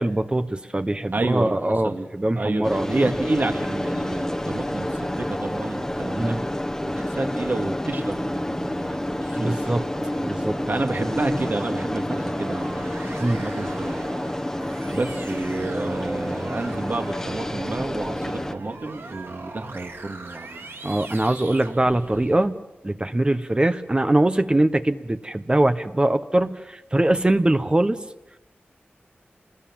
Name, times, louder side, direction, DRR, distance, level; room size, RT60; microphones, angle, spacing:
voice 1, 0.0-2.9 6.2-6.4 9.4-9.8 10.2-10.6 13.2-13.4 20.8-22.6 22.8-28.0, right 1 dB, 25° right, 9 dB, 1.0 m, -22 dB
voice 2, 1.1-2.1 2.3-6.4 6.9-9.7 10.7-12.8 13.3-14.0 14.9-20.7, right 2 dB, 55° right, 4 dB, 2.4 m, -29 dB
sound 1, 2.6-18.5, left 1 dB, 10° left, 1.2 m, -29 dB
sound 2, 9.6-22.5, right 3 dB, 75° right, 2.1 m, -40 dB
28.5 x 21.0 x 7.4 m, 0.98 s
wide cardioid pair, 90°, 4 cm